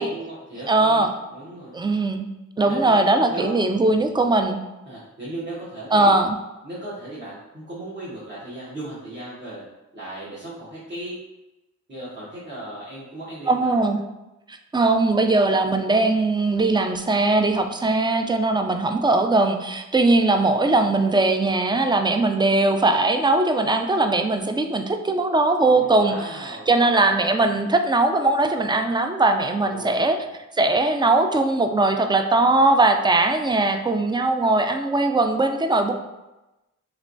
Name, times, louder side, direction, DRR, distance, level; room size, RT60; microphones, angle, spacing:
voice 1, 0.0-1.8 2.6-3.0 3.3-3.5 3.9-4.3 4.8-6.1 6.6-9.6 9.9-11.2 11.9-13.8 25.7-26.7 29.5-30.3, right 1 dB, 35° right, -10 dB, 1.2 m, -36 dB
voice 2, 0.7-1.1 1.7-2.3 2.6-4.6 5.9-6.4 13.5-14.0 14.7-30.2 30.6-35.9, right 2 dB, 15° right, 6 dB, 0.3 m, -20 dB
3.2 x 3.0 x 2.6 m, 1.0 s
cardioid pair, 50°, 32 cm